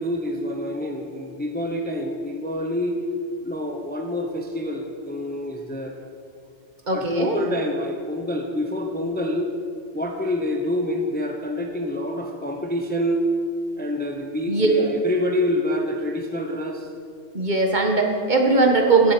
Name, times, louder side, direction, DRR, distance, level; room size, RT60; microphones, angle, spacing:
voice 1, 0.0-3.0 3.4-6.0 6.9-9.5 9.9-13.2 13.8-16.9, left 1 dB, 10° left, 3 dB, 0.7 m, -27 dB
voice 2, 6.9-7.4 14.5-14.7 17.3-19.1, right 3 dB, 40° right, 2 dB, 1.5 m, -19 dB
14.0 x 7.8 x 6.1 m, 2.3 s
omnidirectional pair, 1.2 m